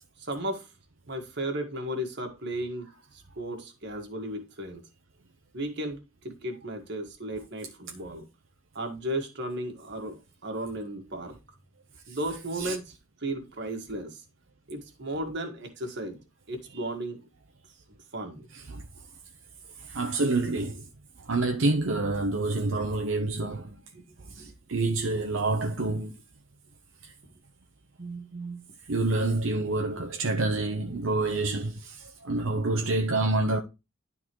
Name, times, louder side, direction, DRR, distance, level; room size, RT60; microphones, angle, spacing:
voice 1, 0.2-0.7 1.1-4.9 5.5-8.2 8.8-11.3 12.1-14.2 14.7-16.2 16.5-17.3 18.1-18.5 23.9-24.5 28.0-28.7, right 1 dB, 60° right, 1.8 m, -35 dB
voice 2, 18.5-18.8 19.8-20.9 21.2-23.8 24.3-26.1 27.0-27.1 28.9-33.6, right 2 dB, 90° right, 0.8 m, -28 dB
11.5 x 4.0 x 3.0 m
head